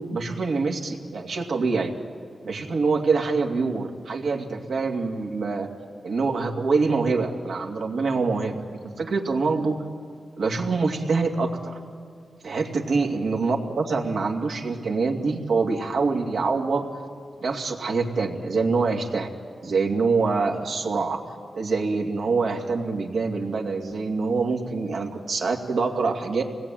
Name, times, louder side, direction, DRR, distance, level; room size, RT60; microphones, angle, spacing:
voice 1, 0.0-1.9 2.4-5.7 6.0-9.8 10.4-11.8 12.4-16.9 17.4-19.3 19.6-21.2 21.5-26.4, right 4 dB, 80° right, 1 dB, 2.5 m, -25 dB
27.5 x 19.0 x 9.1 m, 2.1 s
cardioid pair, 85°, 0 cm